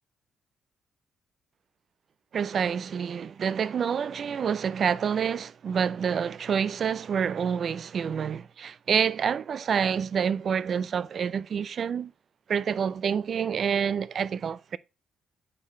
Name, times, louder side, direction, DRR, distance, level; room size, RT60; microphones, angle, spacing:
voice 1, 2.3-12.1 12.5-14.8, right 7 dB, 55° right, 0.4 m, -27 dB
8.4 x 4.7 x 3.1 m
cardioid pair, 90°, 0 cm